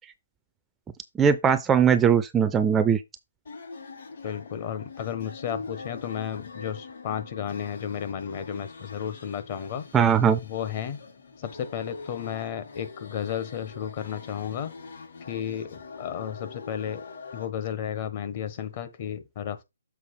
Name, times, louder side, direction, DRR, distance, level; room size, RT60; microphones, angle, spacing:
voice 1, 1.2-3.0 9.9-10.4, right 7 dB, 10° right, 0.4 m, -20 dB
sound 1, 3.4-17.4, left 4 dB, 65° left, 5.4 m, -43 dB
voice 2, 4.2-9.8 10.4-11.0 11.4-14.7 15.3-17.0 17.3-19.6, left 9 dB, 35° left, 1.2 m, -33 dB
7.2 x 4.4 x 4.3 m
hypercardioid pair, 155°, 0 cm